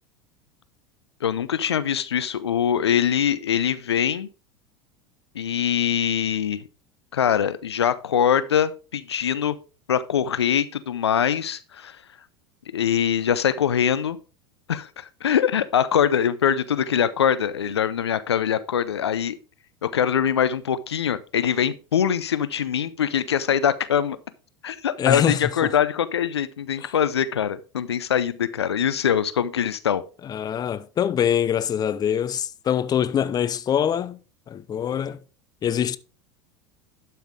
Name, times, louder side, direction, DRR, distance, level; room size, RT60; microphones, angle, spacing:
voice 1, 1.2-4.3 5.3-6.6 7.1-9.6 9.9-12.0 12.7-14.2 14.7-19.4 19.8-24.2 24.6-30.0, left 8 dB, 85° left, 0.6 m, -23 dB
voice 2, 25.0-25.8 26.8-26.9 30.2-34.2 34.5-35.2 35.6-36.0, left 9 dB, 30° left, 0.6 m, -24 dB
12.0 x 5.7 x 3.6 m
hypercardioid pair, 80°, 14 cm